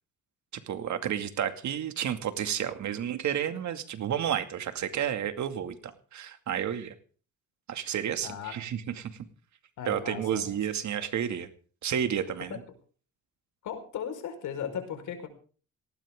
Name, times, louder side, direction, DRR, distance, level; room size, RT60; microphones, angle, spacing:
voice 1, 0.7-6.9 7.7-9.3 9.9-11.5 11.8-12.6, right 9 dB, 70° right, 8 dB, 2.4 m, -31 dB
voice 2, 8.2-8.6 9.8-10.5 12.5-12.6 13.6-15.3, left 8 dB, 75° left, 7 dB, 5.0 m, -36 dB
18.5 x 18.5 x 3.8 m, 0.41 s
cardioid pair, 90°, 30 cm